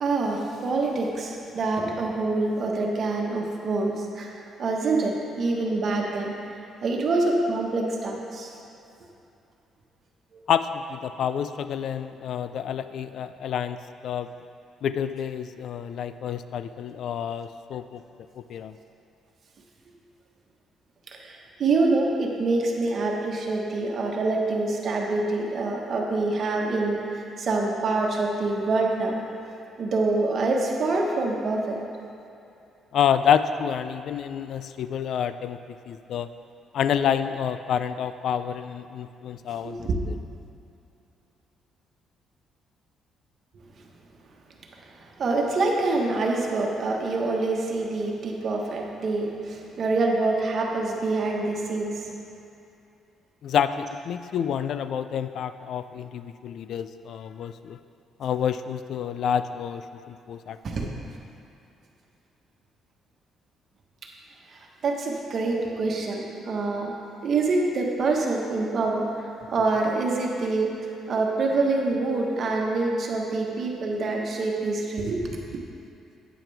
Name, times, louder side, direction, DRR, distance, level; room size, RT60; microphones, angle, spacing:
voice 1, 0.0-6.4 6.8-8.5 10.3-10.4 21.1-29.2 29.8-31.8 39.6-40.0 44.9-52.0 60.6-60.9 64.5-66.9 67.2-70.7 71.1-75.6, right 3 dB, 50° right, 0 dB, 1.3 m, -26 dB
voice 2, 10.5-13.8 14.0-14.3 14.8-18.0 18.4-18.8 32.9-35.6 35.9-36.3 36.7-40.1 53.4-57.8 58.2-60.9, left 8 dB, 65° left, 11 dB, 0.3 m, -28 dB
9.0 x 8.9 x 3.4 m, 2.7 s
cardioid pair, 100°, 0 cm